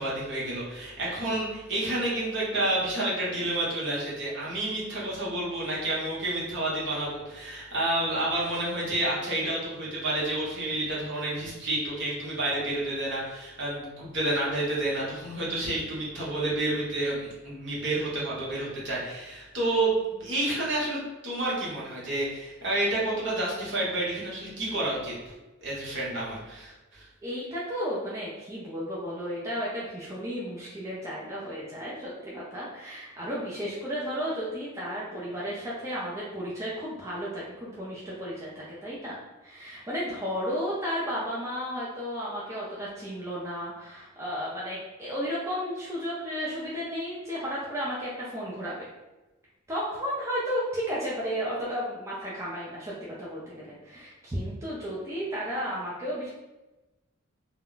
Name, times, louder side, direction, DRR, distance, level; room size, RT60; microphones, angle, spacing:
voice 1, 0.0-25.3 25.6-27.1, right 1 dB, 55° right, -6 dB, 1.0 m, -30 dB
voice 2, 27.2-48.9 49.7-56.3, equal, 15° right, -7 dB, 0.4 m, -33 dB
2.2 x 2.1 x 3.7 m, 1.1 s
head